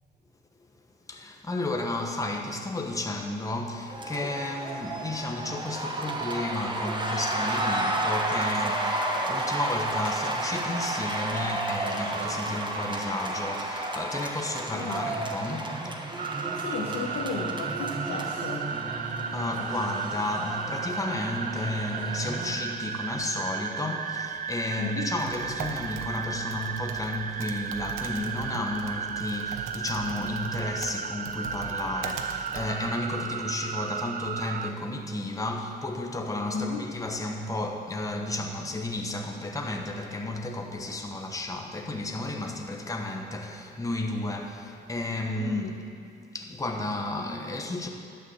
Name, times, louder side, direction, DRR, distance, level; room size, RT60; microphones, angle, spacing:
voice 1, 1.1-15.9 19.0-45.7 46.3-47.9, left 2 dB, 15° left, 2 dB, 1.2 m, -32 dB
sound 1, 3.9-22.6, right 2 dB, 25° right, 1.3 m, -32 dB
voice 2, 14.7-15.2 16.5-18.7 24.8-25.1 36.5-36.9 45.4-45.9, left 4 dB, 75° left, -1 dB, 1.2 m, -34 dB
sound 2, 16.2-34.7, right 7 dB, 45° right, 0.5 m, -34 dB
Typing, 25.0-33.2, right 7 dB, 80° right, 0.9 m, -41 dB
11.0 x 6.8 x 7.0 m, 2.4 s
cardioid pair, 90°, 20 cm